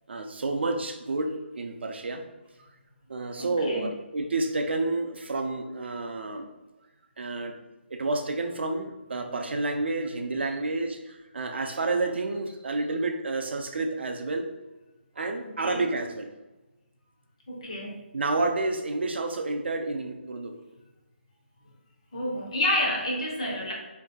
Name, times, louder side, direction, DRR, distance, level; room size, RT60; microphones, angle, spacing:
voice 1, 0.1-1.3 1.6-2.3 3.1-6.5 7.2-7.5 7.9-14.5 15.2-16.3 18.1-20.6, right 2 dB, 65° right, 5 dB, 0.4 m, -29 dB
voice 2, 3.4-3.9 11.5-11.6 15.6-15.8 17.5-18.0 22.1-23.7, left 1 dB, 30° left, -2 dB, 0.6 m, -29 dB
3.7 x 2.6 x 2.3 m, 1.1 s
hypercardioid pair, 180°, 6 cm